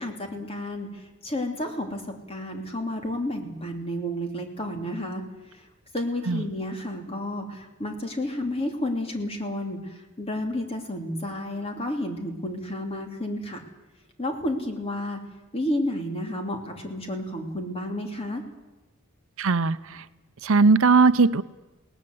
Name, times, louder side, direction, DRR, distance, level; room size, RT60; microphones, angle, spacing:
voice 1, 0.0-5.2 5.5-5.7 5.9-13.6 14.2-15.2 15.5-18.4, left 1 dB, 30° left, 3 dB, 2.8 m, -31 dB
voice 2, 19.4-20.0 20.4-21.4, right 4 dB, 70° right, 14 dB, 0.6 m, -19 dB
20.5 x 18.5 x 7.8 m, 1.1 s
head